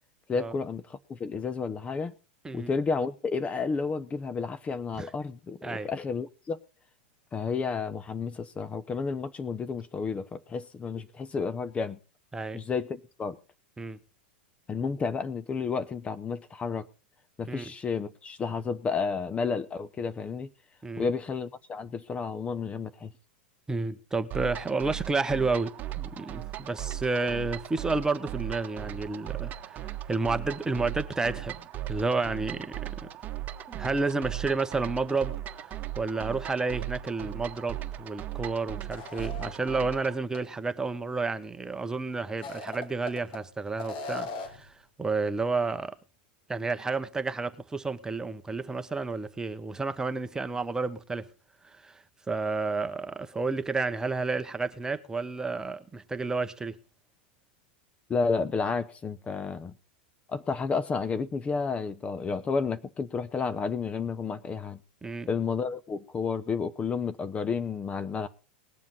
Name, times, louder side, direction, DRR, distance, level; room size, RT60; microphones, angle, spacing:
voice 1, 0.3-2.1 2.5-6.6 7.3-12.0 12.5-13.4 14.7-16.9 17.4-20.5 21.0-23.1 58.1-59.7 60.3-64.8 65.3-68.3, left 5 dB, 20° left, 0.8 m, -31 dB
voice 2, 23.7-33.1 33.7-35.6 35.9-44.7 45.0-46.0 46.5-51.3 51.6-56.8 65.0-65.3, right 3 dB, 10° right, 1.1 m, -31 dB
sound 1, 24.3-40.2, right 13 dB, 35° right, 1.4 m, -38 dB
sound 2, 38.9-40.0 40.3-40.4 42.3-43.4 43.8-44.7, left 3 dB, 60° left, 3.3 m, -39 dB
19.5 x 7.4 x 5.5 m
hypercardioid pair, 100°, 6 cm